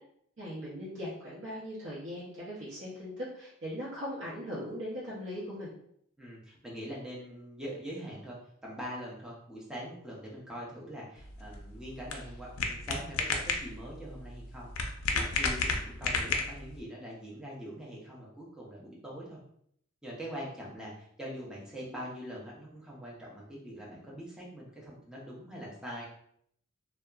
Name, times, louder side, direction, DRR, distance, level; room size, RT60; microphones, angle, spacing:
voice 1, 0.4-5.7, equal, 60° right, -8 dB, 0.7 m, -39 dB
voice 2, 6.2-8.4 8.6-14.7 15.1-19.4 20.0-26.0, equal, 5° right, -6 dB, 0.5 m, -43 dB
sound 1, 11.2-16.8, left 4 dB, 75° left, 0.4 m, -33 dB
2.7 x 2.2 x 2.3 m, 0.69 s
head